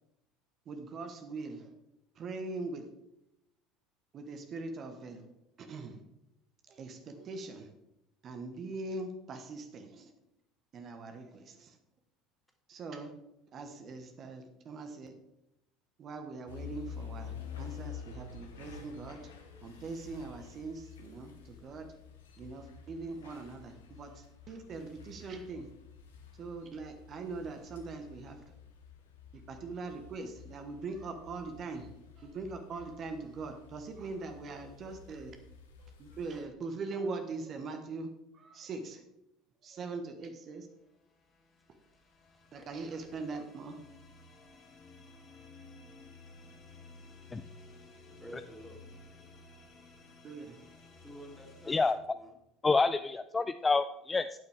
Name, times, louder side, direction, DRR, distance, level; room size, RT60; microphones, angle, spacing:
voice 1, 0.7-1.7 2.2-2.8 4.1-5.2 5.6-6.0 6.7-7.7 8.2-10.1 10.7-11.7 12.7-13.1 13.5-15.1 16.0-21.9 22.4-25.7 26.4-28.4 29.3-31.9 32.2-35.3 36.0-38.1 38.3-39.0 39.6-40.7 42.5-43.8 50.2-50.6, right 3 dB, 40° right, 6 dB, 1.3 m, -42 dB
sound 1, 16.5-36.4, left 7 dB, 70° left, 1.4 m, -50 dB
sound 2, 41.0-51.9, left 3 dB, 35° left, 1.9 m, -55 dB
voice 2, 42.3-42.7 48.2-48.8 51.0-52.4, equal, ahead, 1 dB, 2.7 m, -50 dB
voice 3, 52.6-54.3, left 4 dB, 20° left, 11 dB, 0.4 m, -28 dB
11.5 x 9.4 x 3.5 m, 0.85 s
figure-of-eight pair, 65°, 0 cm